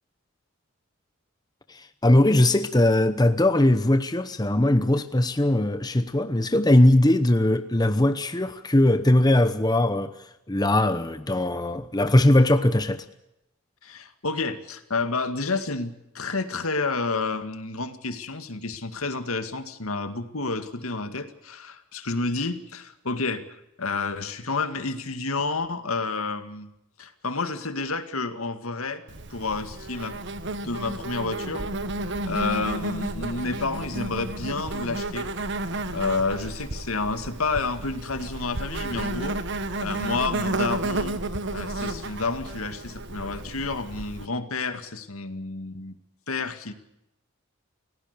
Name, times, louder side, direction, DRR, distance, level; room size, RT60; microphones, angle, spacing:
voice 1, 1.7-10.1 10.5-13.0, left 1 dB, 20° left, 0.9 m, -20 dB
voice 2, 13.8-26.7 27.0-29.0 29.3-30.2 30.6-31.7 32.3-35.3 35.9-39.4 39.8-41.2 41.5-46.0 46.3-46.7, left 3 dB, 80° left, 2.1 m, -30 dB
Insect, 29.1-44.2, right 2 dB, 55° right, 1.4 m, -32 dB
29.5 x 17.0 x 6.8 m
head